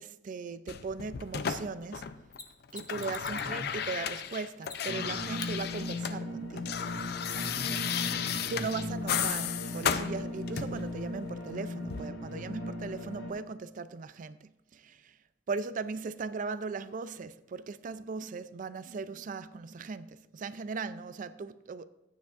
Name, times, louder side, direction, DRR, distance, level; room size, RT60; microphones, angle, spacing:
voice 1, 0.0-2.1 2.7-6.7 8.5-15.2 15.5-21.9, right 4 dB, 45° right, 14 dB, 0.4 m, -38 dB
sound 1, 0.7-2.4 2.6-6.2 6.4-10.9 11.9-12.0, left 8 dB, 60° left, 0.5 m, -34 dB
Mechanisms, 2.3-3.6 4.6-5.0 5.4-5.5 8.3-8.4, left 4 dB, 25° left, 0.8 m, -45 dB
voice 2, 3.3-3.6 7.3-8.7, equal, 25° right, -6 dB, 3.3 m, -43 dB
sound 2, 4.9-13.3, left 1 dB, 80° left, 1.8 m, -38 dB
14.0 x 9.4 x 2.5 m, 0.96 s
head